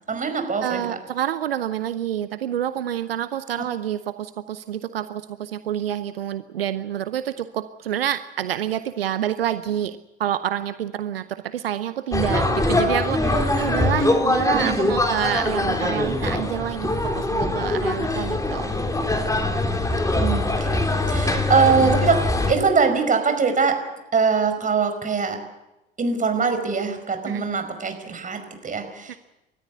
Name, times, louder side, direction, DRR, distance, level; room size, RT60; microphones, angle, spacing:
voice 1, 0.1-1.0 14.5-14.9 20.2-20.8 21.1-22.2 22.5-23.8 24.1-25.4 26.0-29.2, right 5 dB, 25° right, 7 dB, 5.2 m, -22 dB
voice 2, 0.6-18.7 27.3-27.4 29.1-29.2, right 10 dB, 80° right, 13 dB, 0.7 m, -28 dB
sound 1, 12.1-22.5, left 2 dB, 10° left, 3.4 m, -22 dB
30.0 x 14.0 x 8.3 m, 0.97 s
figure-of-eight pair, 65°, 29 cm